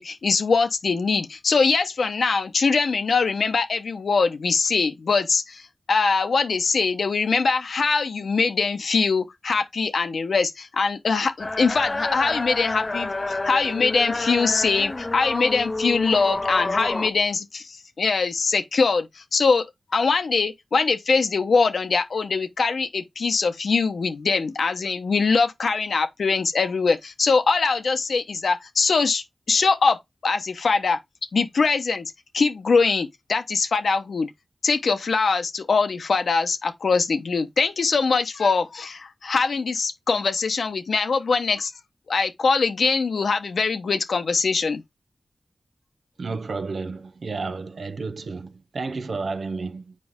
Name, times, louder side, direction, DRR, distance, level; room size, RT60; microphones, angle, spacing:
voice 1, 0.0-19.7 19.9-31.0 31.3-34.3 34.6-41.7 42.1-44.8, left 4 dB, 80° left, 0.9 m, -22 dB
sound 1, 11.4-17.1, left 2 dB, 40° left, 0.5 m, -29 dB
voice 2, 46.2-49.9, right 4 dB, 75° right, 0.7 m, -31 dB
7.6 x 4.7 x 3.6 m
cardioid pair, 45°, 0 cm